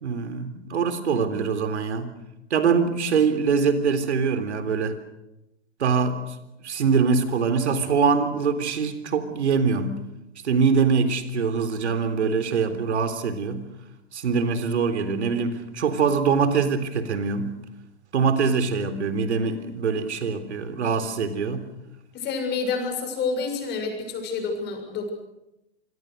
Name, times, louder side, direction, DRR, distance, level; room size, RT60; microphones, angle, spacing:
voice 1, 0.0-2.1 2.5-4.9 5.8-6.2 6.6-10.0 10.4-13.6 14.1-17.5 18.1-21.6, right 5 dB, 80° right, 10 dB, 3.7 m, -23 dB
voice 2, 22.1-25.1, left 4 dB, 30° left, 5 dB, 7.1 m, -28 dB
26.5 x 23.0 x 6.7 m, 0.90 s
hypercardioid pair, 120°, 33 cm